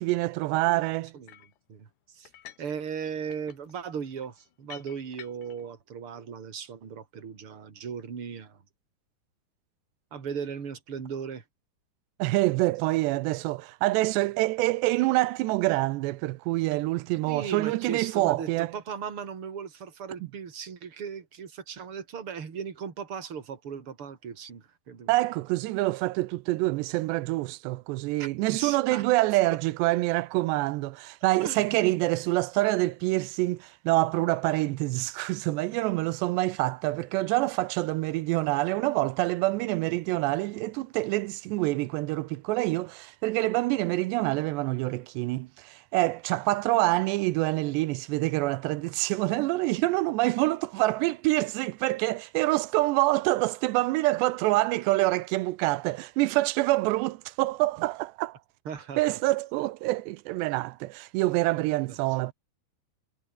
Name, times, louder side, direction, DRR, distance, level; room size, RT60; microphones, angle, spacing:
voice 1, 0.0-1.1 12.2-18.7 25.1-58.4 59.0-62.3, right 19 dB, 90° right, 3.0 m, -26 dB
sound 1, 1.3-1.6 2.2-2.7 3.0-5.6, left 12 dB, 80° left, 3.7 m, -50 dB
voice 2, 1.7-2.3 2.6-8.6 10.1-11.4 17.3-25.1 28.2-29.0 29.5-29.6 31.4-32.0 58.7-59.2 61.9-62.0, right 7 dB, 35° right, 3.5 m, -37 dB
omnidirectional pair, 4.8 m